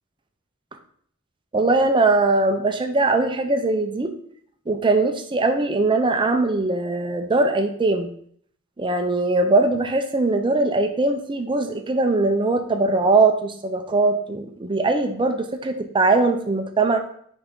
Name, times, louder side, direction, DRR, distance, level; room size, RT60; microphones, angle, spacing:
voice 1, 1.5-4.1 4.7-8.1 8.8-17.0, right 3 dB, 25° right, 6 dB, 0.6 m, -21 dB
5.7 x 5.1 x 3.6 m, 0.62 s
head